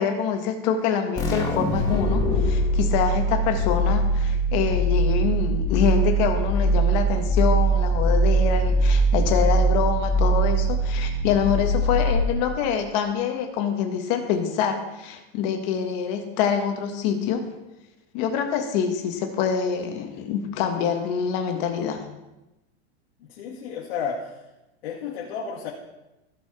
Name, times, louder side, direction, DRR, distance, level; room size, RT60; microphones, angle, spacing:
voice 1, 0.0-17.4 18.1-22.0, left 7 dB, 40° left, 5 dB, 1.5 m, -25 dB
sound 1, 1.2-12.6, right 1 dB, 10° left, 1.5 m, -22 dB
voice 2, 23.3-24.3 24.8-25.7, left 6 dB, 70° left, -5 dB, 2.6 m, -32 dB
15.5 x 6.1 x 4.3 m, 0.98 s
supercardioid pair, 160°, 32 cm